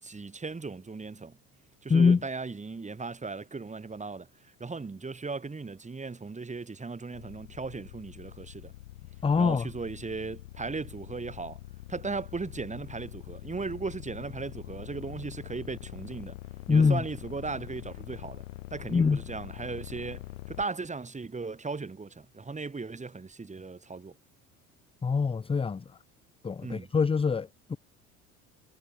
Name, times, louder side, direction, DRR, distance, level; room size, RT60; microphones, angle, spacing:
voice 1, 0.0-1.4 1.8-8.7 9.4-11.6 11.9-16.4 16.7-18.4 18.7-24.2 26.6-26.9, right 4 dB, 15° right, 6.6 m, -37 dB
voice 2, 1.9-2.2 9.2-9.7 16.7-17.0 18.9-19.2 25.0-26.0 26.4-27.8, left 5 dB, 15° left, 0.9 m, -24 dB
sound 1, 7.1-20.6, left 16 dB, 65° left, 7.6 m, -44 dB
figure-of-eight pair, 65°, 41 cm